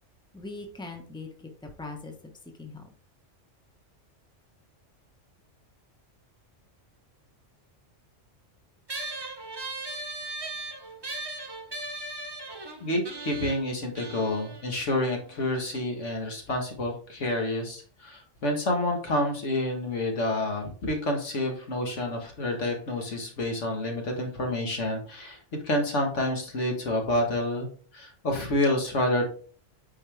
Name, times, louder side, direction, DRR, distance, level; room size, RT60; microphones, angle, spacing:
voice 1, 0.3-2.1 2.6-2.9, left 3 dB, 5° left, 4 dB, 1.1 m, -40 dB
sound 1, 8.9-15.7, right 2 dB, 20° right, 1.0 m, -38 dB
voice 2, 12.8-29.2, left 1 dB, 75° left, 2 dB, 1.9 m, -28 dB
8.8 x 4.7 x 3.4 m, 0.44 s
omnidirectional pair, 1.3 m